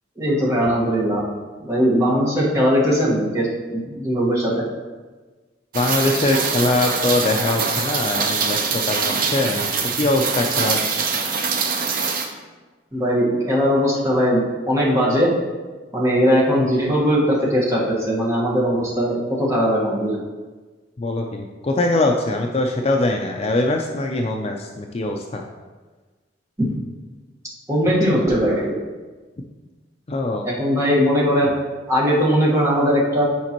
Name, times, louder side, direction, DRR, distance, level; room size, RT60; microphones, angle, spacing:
voice 1, 0.2-1.2 1.6-4.6 12.9-15.3 15.9-20.2 27.7-28.8 30.4-31.5 31.9-33.2, equal, 15° right, -6 dB, 1.5 m, -19 dB
voice 2, 5.7-10.8 21.0-25.4 30.1-30.5, left 2 dB, 35° left, 2 dB, 0.4 m, -22 dB
Rain, 5.7-12.3, right 5 dB, 50° right, 0.7 m, -23 dB
8.4 x 5.2 x 3.0 m, 1.3 s
head